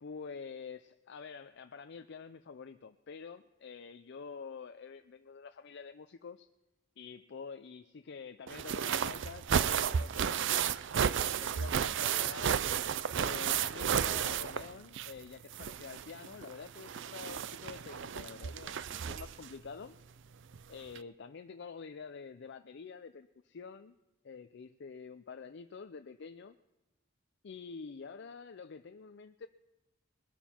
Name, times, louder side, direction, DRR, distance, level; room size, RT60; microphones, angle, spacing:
voice 1, 0.0-6.5 7.0-10.7 11.4-12.7 13.1-20.0 20.7-23.9 24.2-26.6 27.4-29.5, left 5 dB, 60° left, 8 dB, 0.5 m, -47 dB
sound 1, 8.5-15.2 15.5-19.5 20.5-20.6 21.0-21.1, right 8 dB, 65° right, 0.5 m, -33 dB
21.5 x 11.5 x 4.4 m, 1.0 s
head